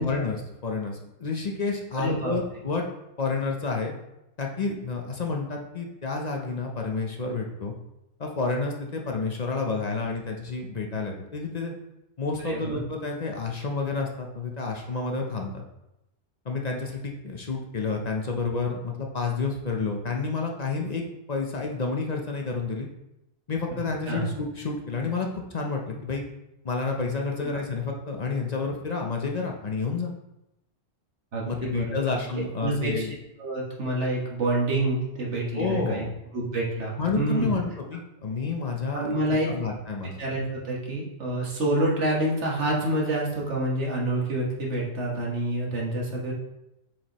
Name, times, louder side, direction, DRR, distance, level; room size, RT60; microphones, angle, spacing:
voice 1, 0.0-2.9 3.2-3.9 4.4-7.7 8.2-11.7 12.2-15.6 16.5-21.0 21.3-22.9 23.5-26.2 26.6-30.1 31.5-33.1 35.5-36.1 37.0-39.2 39.5-40.2, left 4 dB, 40° left, 1 dB, 0.7 m, -30 dB
voice 2, 1.9-2.3 12.4-12.8 24.1-24.3 27.5-27.6 31.3-32.1 32.6-33.1 33.4-36.1 36.3-37.5 38.9-39.5 40.2-46.3, right 1 dB, 90° right, -3 dB, 1.8 m, -27 dB
7.2 x 4.7 x 3.0 m, 0.89 s
omnidirectional pair, 1.2 m